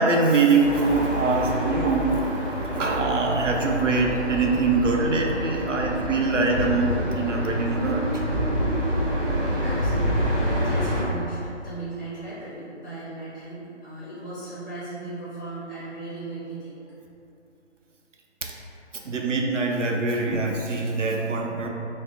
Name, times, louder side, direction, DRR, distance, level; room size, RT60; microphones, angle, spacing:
voice 1, 0.0-2.4 2.7-8.1 19.0-21.7, right 3 dB, 85° right, 0 dB, 0.6 m, -23 dB
sound 1, 0.6-11.0, equal, 50° right, 1.2 m, -27 dB
voice 2, 9.1-16.7, right 2 dB, 15° left, -12 dB, 0.8 m, -37 dB
3.5 x 2.0 x 3.7 m, 2.7 s
figure-of-eight pair, 150°, 36 cm